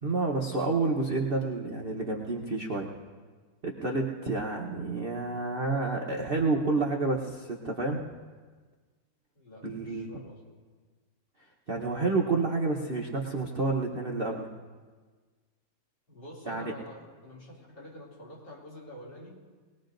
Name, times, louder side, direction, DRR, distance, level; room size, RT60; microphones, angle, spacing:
voice 1, 0.0-2.9 3.6-8.1 9.6-10.1 11.7-14.5 16.5-16.7, right 3 dB, 45° right, -1 dB, 0.7 m, -29 dB
voice 2, 9.3-10.5 16.1-19.4, equal, 55° left, -5 dB, 3.3 m, -47 dB
22.5 x 19.0 x 2.6 m, 1.4 s
omnidirectional pair, 2.4 m